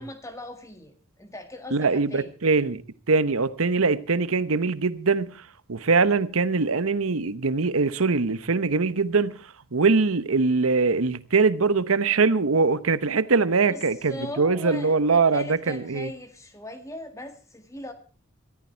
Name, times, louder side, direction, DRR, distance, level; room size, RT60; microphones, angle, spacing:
voice 1, 0.0-2.4 13.7-13.8 14.1-17.9, left 1 dB, 15° left, 1.9 m, -39 dB
voice 2, 1.7-2.8 3.1-16.1, right 4 dB, 75° right, 0.9 m, -22 dB
19.0 x 14.0 x 4.5 m
head